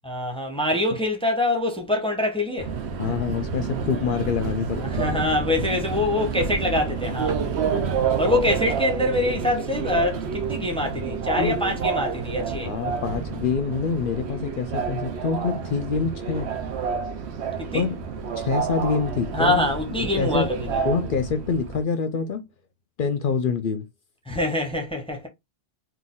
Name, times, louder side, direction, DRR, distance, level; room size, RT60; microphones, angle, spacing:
voice 1, 0.0-2.7 4.8-7.4 8.2-12.8 17.6-17.9 19.3-20.8 24.3-25.3, left 1 dB, 5° left, 0.8 m, -25 dB
Subway metro underground, 2.6-21.8, right 6 dB, 70° right, 0.9 m, -29 dB
voice 2, 3.0-5.2 7.7-7.9 11.3-11.6 12.6-16.5 17.7-18.0 18.4-19.7 20.0-20.5 20.8-22.5 23.0-23.9, left 5 dB, 60° left, 0.7 m, -26 dB
4.1 x 2.6 x 3.8 m
omnidirectional pair, 1.1 m